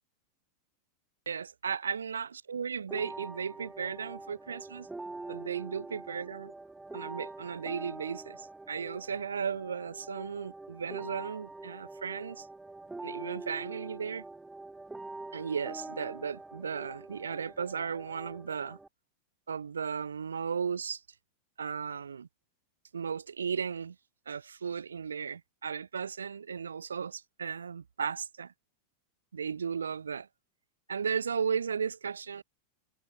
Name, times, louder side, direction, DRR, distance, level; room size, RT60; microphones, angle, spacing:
voice 1, 1.3-4.9 5.3-6.5 6.9-12.5 13.0-14.2 15.3-18.8 19.5-21.0 21.6-22.3 22.9-24.0 24.3-28.5 29.3-30.3 30.9-32.4, right 6 dB, 70° right, 0.8 m, -35 dB
sound 1, 2.9-18.9, right 2 dB, 10° right, 2.0 m, -45 dB
figure-of-eight pair, 90°, 0 cm